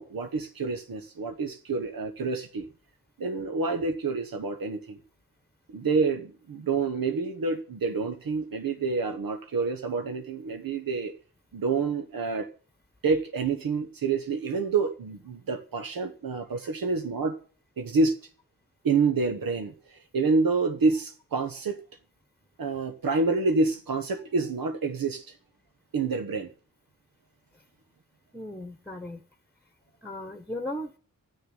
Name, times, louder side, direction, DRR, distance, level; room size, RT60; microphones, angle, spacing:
voice 1, 0.0-2.7 3.2-5.0 5.7-11.1 11.5-12.5 13.0-17.4 17.8-18.1 18.8-21.8 22.6-25.3 25.9-26.5, right 4 dB, 85° right, 1.2 m, -28 dB
voice 2, 28.3-29.2 30.0-31.0, left 1 dB, 5° left, 1.2 m, -37 dB
11.5 x 6.6 x 9.0 m
wide cardioid pair, 85°, 34 cm